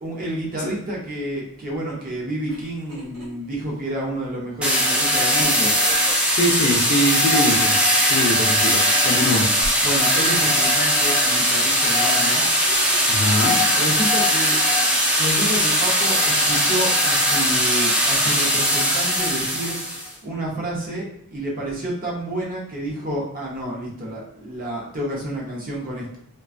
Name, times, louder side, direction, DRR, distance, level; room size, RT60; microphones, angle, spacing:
voice 1, 0.0-5.8 9.8-12.4 13.7-14.6 15.2-19.8 20.2-26.2, right 1 dB, 40° right, -3 dB, 0.7 m, -29 dB
sound 1, 2.5-3.3 3.7-3.8 5.4-7.1 9.6-10.2 12.2-13.3, equal, 70° right, 1.0 m, -37 dB
sound 2, 4.6-20.1, equal, 5° right, 0.3 m, -19 dB
voice 2, 6.3-7.7 8.1-9.5 13.1-13.6, left 1 dB, 50° left, 0 dB, 0.5 m, -22 dB
2.4 x 2.2 x 2.4 m, 0.74 s
head